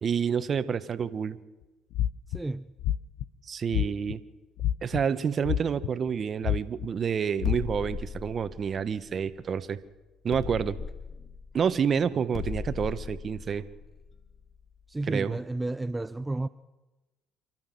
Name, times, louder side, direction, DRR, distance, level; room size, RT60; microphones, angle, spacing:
voice 1, 0.0-1.4 3.5-4.2 4.8-9.8 10.2-10.8 11.5-13.6 15.1-15.4, right 7 dB, 45° right, 1.4 m, -28 dB
sound 1, 1.9-2.4 2.8-3.2 3.7-4.1 4.6-5.0 5.4-6.1 6.4-6.9 7.4-7.5, left 11 dB, 70° left, 0.8 m, -26 dB
voice 2, 2.3-2.6 14.9-16.5, right 2 dB, 15° right, 0.7 m, -31 dB
sound 2, 7.4-9.8 10.3-15.0, left 5 dB, 45° left, 3.0 m, -39 dB
27.5 x 13.0 x 7.9 m
hypercardioid pair, 60°, 0 cm